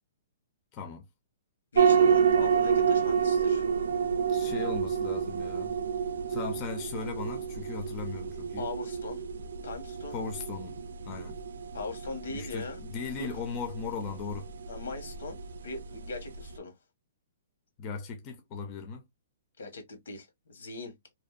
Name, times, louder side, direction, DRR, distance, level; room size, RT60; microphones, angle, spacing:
voice 1, 0.7-1.1 4.3-5.8 6.3-8.7 10.1-11.4 12.3-14.5 17.8-19.1, left 5 dB, 20° left, 0.3 m, -38 dB
voice 2, 1.7-3.6 4.4-4.7 8.6-9.2 9.6-10.2 11.7-13.3 14.7-16.7 19.6-21.0, left 3 dB, 80° left, 1.2 m, -40 dB
sound 1, 1.8-16.6, right 7 dB, 85° right, 0.4 m, -29 dB
2.6 x 2.1 x 2.3 m
hypercardioid pair, 180°, 0 cm